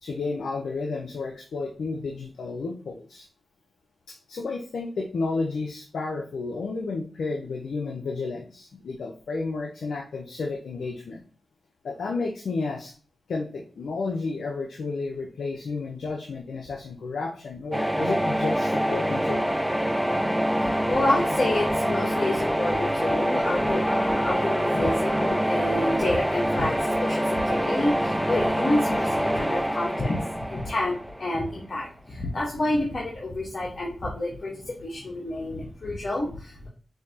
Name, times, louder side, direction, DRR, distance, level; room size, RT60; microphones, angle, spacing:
voice 1, 0.0-3.3 4.1-11.2 11.8-12.9 13.3-19.5, left 3 dB, 90° left, 2 dB, 0.5 m, -32 dB
sound 1, 17.7-31.6, equal, 5° right, 0.5 m, -25 dB
voice 2, 20.6-36.7, left 1 dB, 60° left, -4 dB, 1.2 m, -29 dB
5.7 x 2.7 x 2.8 m, 0.39 s
cardioid pair, 45°, 0 cm